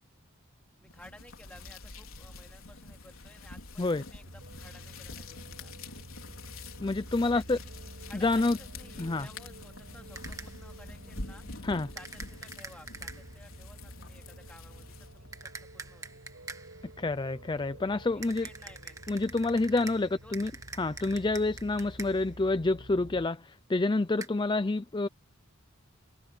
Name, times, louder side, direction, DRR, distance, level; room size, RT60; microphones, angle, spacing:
voice 1, 0.8-5.7 7.3-7.7 8.1-11.5 11.9-16.0 18.1-19.0 19.7-20.4, left 1 dB, 5° left, 3.6 m, -55 dB
sound 1, 0.9-15.3, left 3 dB, 75° left, 4.5 m, -47 dB
sound 2, 4.2-23.3, right 1 dB, 70° right, 6.2 m, -49 dB
voice 2, 6.8-7.6 8.1-8.6 9.0-9.3 11.6-11.9 17.0-18.5 19.1-20.5 20.8-25.1, left 2 dB, 20° left, 0.5 m, -28 dB
sound 3, 10.2-10.7 12.0-13.4 15.3-16.9 18.2-22.4 24.2-24.3, right 3 dB, 15° right, 1.4 m, -45 dB
head